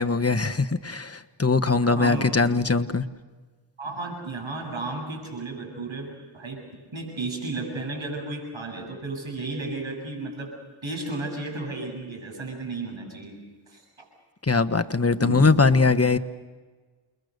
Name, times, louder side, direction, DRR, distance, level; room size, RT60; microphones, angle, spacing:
voice 1, 0.0-3.0 14.4-16.2, left 4 dB, 30° left, 8 dB, 1.2 m, -21 dB
voice 2, 1.8-2.4 3.8-6.7 6.9-10.5 10.8-13.4 13.7-13.8 15.2-15.4, right 3 dB, 80° right, 2 dB, 7.8 m, -33 dB
29.0 x 22.0 x 6.7 m, 1.4 s
cardioid pair, 45°, 47 cm